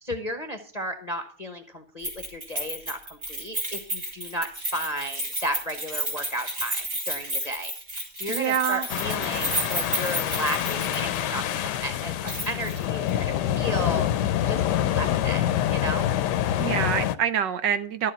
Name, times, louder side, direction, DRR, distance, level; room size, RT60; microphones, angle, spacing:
voice 1, 0.0-7.7 8.2-14.1 14.5-16.1, equal, 30° left, 5 dB, 0.8 m, -34 dB
Keys jangling, 2.0-11.2 11.5-11.6 12.3-12.8 13.1-13.2, right 1 dB, 40° right, 4.4 m, -32 dB
voice 2, 8.3-8.9 16.6-18.1, right 8 dB, 70° right, 11 dB, 1.2 m, -26 dB
sound 1, 8.9-17.2, left 11 dB, 70° left, 1.1 m, -26 dB
12.0 x 7.5 x 5.5 m, 0.42 s
omnidirectional pair, 2.2 m